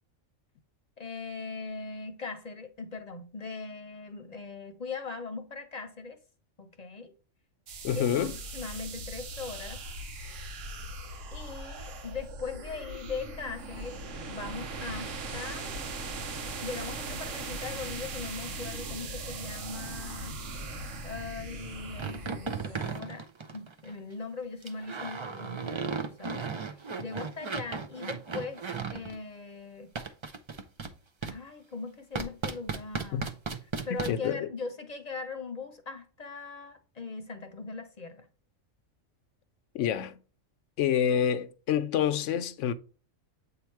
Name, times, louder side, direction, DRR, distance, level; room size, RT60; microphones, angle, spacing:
voice 1, 1.0-6.2 6.6-7.1 7.9-9.8 11.3-14.0 14.3-15.8 16.6-20.8 21.0-23.3 23.5-26.4 26.7-28.6 28.9-29.9 31.2-33.3 33.8-38.3, left 4 dB, 35° left, 0.8 m, -40 dB
sound 1, 7.7-23.0, right 2 dB, 70° right, 1.2 m, -39 dB
voice 2, 7.8-8.3 33.1-33.2 34.1-34.5 39.7-40.2 40.8-42.7, left 9 dB, 70° left, 0.9 m, -27 dB
sound 2, 22.0-23.9 24.6-29.2 30.0-30.9 31.2-31.4 32.1-34.1, right 5 dB, 40° right, 0.4 m, -35 dB
8.2 x 2.9 x 4.5 m
omnidirectional pair, 1.4 m